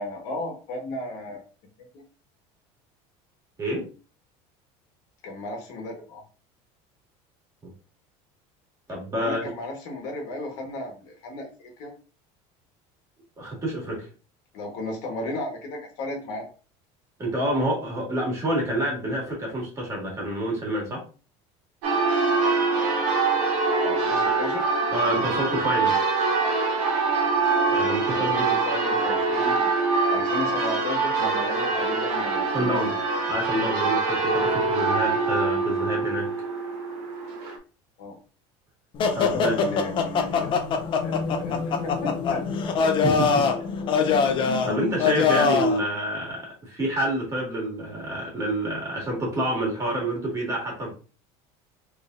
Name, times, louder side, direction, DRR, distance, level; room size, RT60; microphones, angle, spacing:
voice 1, 0.0-1.4 5.2-6.2 9.2-11.9 14.5-16.5 23.8-24.7 28.0-29.7 30.1-33.0 38.0-38.1 39.3-40.5 41.0-42.4, left 2 dB, 65° left, 2 dB, 1.4 m, -34 dB
voice 2, 8.9-9.4 13.4-14.1 17.2-21.0 24.9-25.9 27.7-28.4 32.5-32.9 33.3-36.3 39.1-39.5 43.0-43.5 44.0-44.2 44.7-50.9, right 1 dB, 20° right, -3 dB, 2.0 m, -28 dB
Church bell, 21.8-37.6, right 4 dB, 65° right, 1.3 m, -24 dB
sound 1, 39.0-45.8, left 5 dB, 35° left, 0.6 m, -23 dB
4.1 x 3.3 x 2.6 m, 0.36 s
cardioid pair, 145°, 14 cm